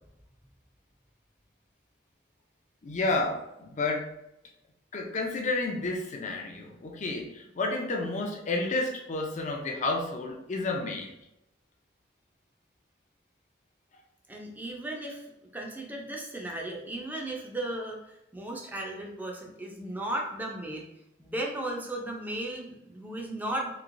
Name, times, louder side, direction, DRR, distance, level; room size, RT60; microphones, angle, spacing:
voice 1, 2.8-4.1 4.9-11.2, left 2 dB, 45° left, 2 dB, 0.5 m, -31 dB
voice 2, 14.3-15.3 15.5-18.0 18.3-20.8 21.2-23.7, right 1 dB, 10° right, -1 dB, 0.5 m, -35 dB
3.1 x 2.9 x 2.6 m, 0.86 s
head